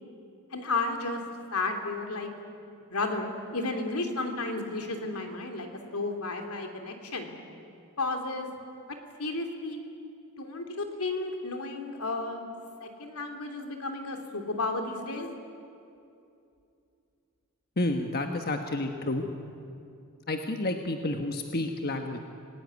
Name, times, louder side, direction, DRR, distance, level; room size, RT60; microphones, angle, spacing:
voice 1, 0.5-1.2 1.5-2.3 2.9-7.3 8.0-8.5 9.2-9.8 10.4-12.4 12.8-15.3, left 3 dB, 80° left, 4 dB, 3.1 m, -33 dB
voice 2, 17.8-19.3 20.3-22.2, left 2 dB, 45° left, 5 dB, 1.3 m, -30 dB
27.5 x 19.0 x 9.6 m, 2.6 s
head